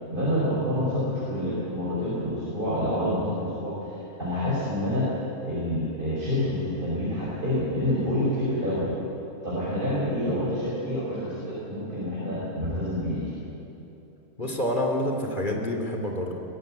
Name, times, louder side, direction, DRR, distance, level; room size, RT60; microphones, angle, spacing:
voice 1, 0.1-5.1 5.4-8.9 9.4-13.3, left 1 dB, 35° right, -8 dB, 5.6 m, -27 dB
voice 2, 14.4-16.4, left 1 dB, 35° left, 2 dB, 2.7 m, -28 dB
21.5 x 15.5 x 9.1 m, 2.9 s
omnidirectional pair, 1.5 m